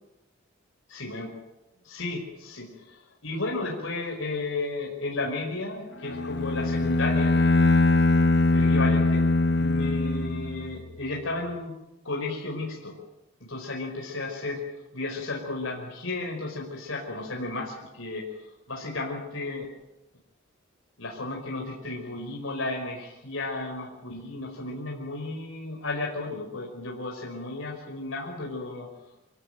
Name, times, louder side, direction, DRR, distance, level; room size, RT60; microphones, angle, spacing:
voice 1, 0.9-1.3 1.8-7.4 8.5-9.2 9.6-11.7 12.0-13.0 13.4-14.6 14.9-18.3 18.7-19.7 21.0-28.9, left 2 dB, 80° left, -1 dB, 5.2 m, -33 dB
Bowed string instrument, 6.1-10.9, left 2 dB, 55° left, 1.0 m, -22 dB
26.0 x 17.5 x 9.2 m, 0.97 s
head